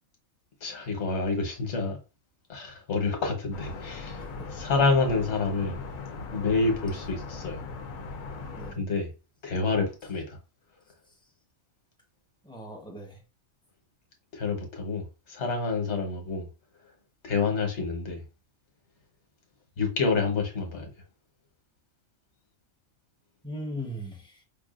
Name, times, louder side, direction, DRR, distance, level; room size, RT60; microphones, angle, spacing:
voice 1, 0.6-2.0 2.5-4.2 4.5-5.8 6.3-7.6 8.7-9.1 9.4-10.4 14.3-16.5 17.2-18.2 19.8-20.9, left 4 dB, 55° left, 1.3 m, -28 dB
sound 1, 3.5-8.7, left 4 dB, 75° left, 1.0 m, -39 dB
voice 2, 4.2-4.5 8.6-8.8 12.4-13.2 23.4-24.4, equal, 5° left, 0.8 m, -39 dB
5.3 x 2.3 x 2.4 m
omnidirectional pair, 1.4 m